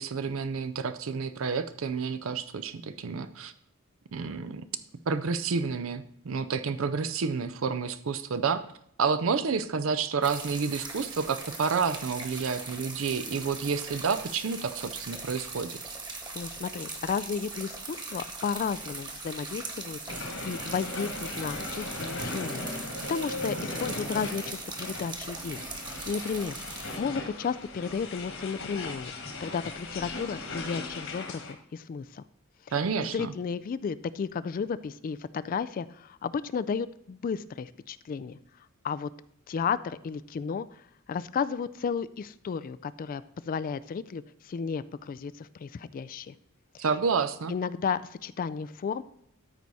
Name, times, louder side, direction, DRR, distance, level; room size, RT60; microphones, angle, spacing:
voice 1, 0.0-3.5 4.1-4.6 5.1-8.6 9.0-15.8 32.7-33.3 46.8-47.5, right 5 dB, 70° right, 12 dB, 0.5 m, -29 dB
sound 1, 10.2-27.0, right 3 dB, 20° right, 1.4 m, -40 dB
voice 2, 16.3-25.6 26.1-29.1 29.4-32.2 33.1-38.4 38.8-39.1 39.5-40.8 41.1-46.3 46.7-46.8 47.5-49.0, left 6 dB, 40° left, 15 dB, 0.3 m, -33 dB
sound 2, 20.1-31.5, left 2 dB, 65° left, 1.7 m, -38 dB
13.0 x 4.7 x 4.0 m, 0.70 s
head